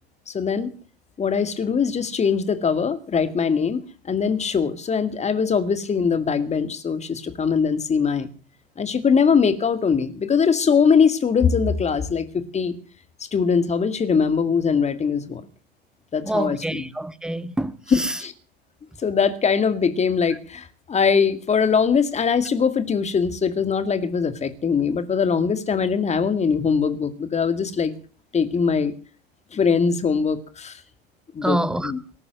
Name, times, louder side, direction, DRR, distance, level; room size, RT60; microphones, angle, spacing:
voice 1, 0.3-0.7 1.2-8.3 8.8-12.7 13.3-15.4 16.1-16.9 17.9-18.3 19.0-27.9 28.3-28.9 29.5-30.8 31.3-31.6 31.8-32.0, left 6 dB, 20° left, 2.0 m, -21 dB
voice 2, 16.2-18.2 31.4-31.9, right 1 dB, ahead, 0.9 m, -26 dB
19.0 x 11.0 x 6.2 m
figure-of-eight pair, 85°, 32 cm